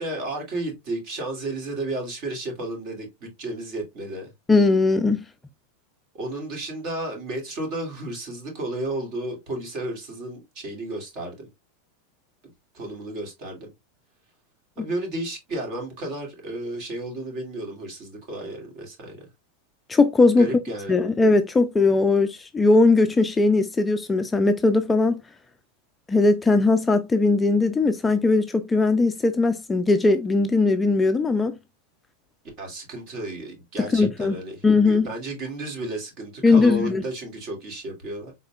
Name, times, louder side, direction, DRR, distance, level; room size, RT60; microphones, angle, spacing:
voice 1, 0.0-4.3 6.1-11.5 12.7-13.7 14.8-19.3 20.4-21.1 32.6-38.3, right 1 dB, 45° right, 2.4 m, -33 dB
voice 2, 4.5-5.2 19.9-20.5 20.9-25.2 26.1-31.5 33.9-34.3 34.6-35.1 36.4-37.0, left 3 dB, 10° left, 0.4 m, -19 dB
4.3 x 3.9 x 2.3 m
supercardioid pair, 135°, 0 cm